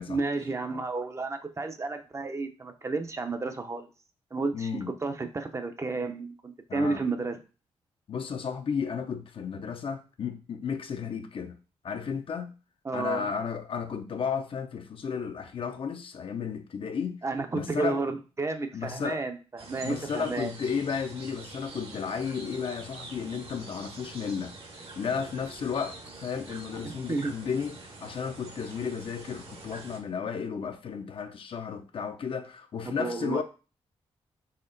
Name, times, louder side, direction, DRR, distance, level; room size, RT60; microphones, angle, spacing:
voice 1, 0.1-3.9 4.3-4.7 5.0-7.4 12.8-13.3 17.2-20.5 26.8-27.3 32.8-33.4, right 3 dB, 25° right, 0.5 m, -32 dB
voice 2, 4.5-4.9 6.7-7.0 8.1-11.6 11.8-12.5 12.9-17.2 17.5-18.0 18.7-19.2 19.8-33.4, left 6 dB, 55° left, 0.5 m, -33 dB
sound 1, 19.6-30.0, right 2 dB, 60° right, 1.1 m, -45 dB
4.3 x 3.0 x 3.8 m
cardioid pair, 105°, 11 cm